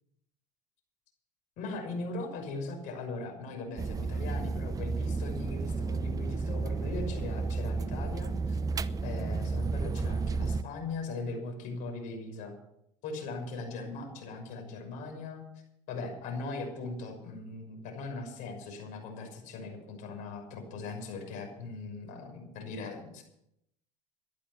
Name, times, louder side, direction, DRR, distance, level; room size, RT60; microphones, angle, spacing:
voice 1, 1.6-8.6 9.0-12.5 13.0-15.4 15.9-23.2, left 3 dB, 65° left, 4 dB, 6.0 m, -39 dB
sound 1, 3.8-10.6, right 4 dB, 25° right, 0.7 m, -32 dB
14.5 x 11.5 x 6.9 m, 0.79 s
supercardioid pair, 95°, 14 cm